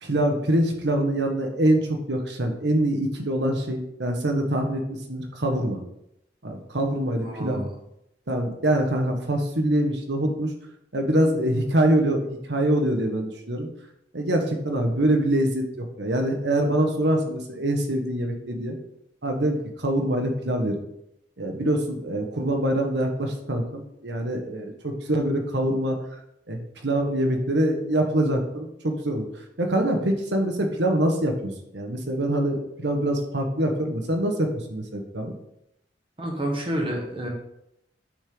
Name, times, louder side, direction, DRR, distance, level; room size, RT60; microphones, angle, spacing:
voice 1, 0.0-5.8 6.4-7.6 8.3-10.5 10.9-13.7 14.1-18.7 19.2-20.7 21.4-26.0 26.5-29.3 29.6-35.3, right 1 dB, 75° right, 3 dB, 1.5 m, -24 dB
voice 2, 7.2-7.7 36.2-37.3, right 1 dB, 30° right, 0 dB, 1.5 m, -29 dB
8.3 x 6.4 x 4.0 m, 0.81 s
head